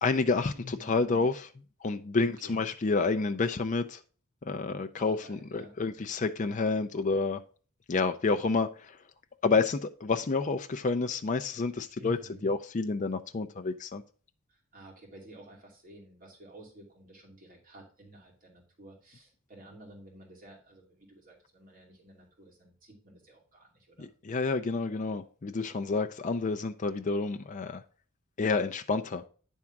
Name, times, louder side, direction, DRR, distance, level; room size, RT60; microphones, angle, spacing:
voice 1, 0.0-1.5 1.8-4.0 4.4-7.4 7.9-9.0 9.4-12.2 12.4-14.0 24.0-27.8 28.4-29.2, left 4 dB, 35° left, 0.5 m, -29 dB
voice 2, 0.5-1.1 2.4-2.6 5.0-5.8 12.0-12.5 14.5-24.1, equal, 40° right, 2.5 m, -51 dB
9.8 x 3.7 x 5.8 m
head